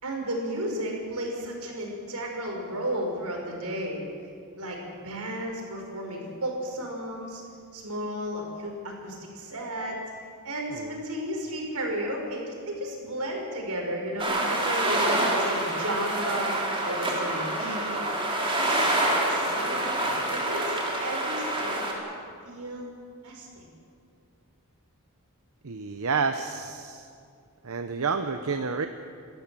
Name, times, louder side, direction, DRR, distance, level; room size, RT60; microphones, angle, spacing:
voice 1, 0.0-4.0 4.6-7.4 7.7-10.0 10.4-18.0 18.6-21.8 22.4-22.9 23.2-23.6, right 1 dB, 90° right, 1 dB, 5.1 m, -33 dB
sound 1, 14.2-21.9, right 1 dB, 25° right, 3.6 m, -27 dB
voice 2, 25.6-27.1 27.6-28.9, right 5 dB, 70° right, 8 dB, 0.8 m, -29 dB
28.0 x 13.5 x 7.6 m, 2.4 s
head